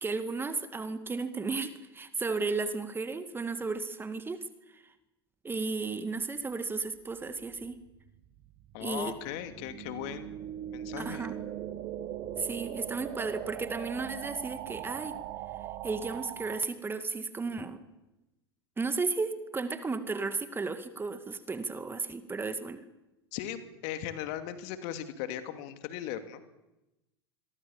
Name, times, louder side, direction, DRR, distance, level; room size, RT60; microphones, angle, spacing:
voice 1, 0.0-4.4 4.7-4.8 5.4-7.8 8.8-9.1 11.0-11.3 12.4-15.2 15.8-17.8 18.8-22.8, right 4 dB, 15° right, 10 dB, 2.2 m, -34 dB
sound 1, 7.4-16.6, right 11 dB, 45° right, 2.2 m, -40 dB
voice 2, 8.7-10.4 10.7-11.3 23.3-26.4, left 11 dB, 55° left, 9 dB, 2.6 m, -38 dB
26.5 x 22.5 x 7.3 m, 0.98 s
figure-of-eight pair, 80°, 13 cm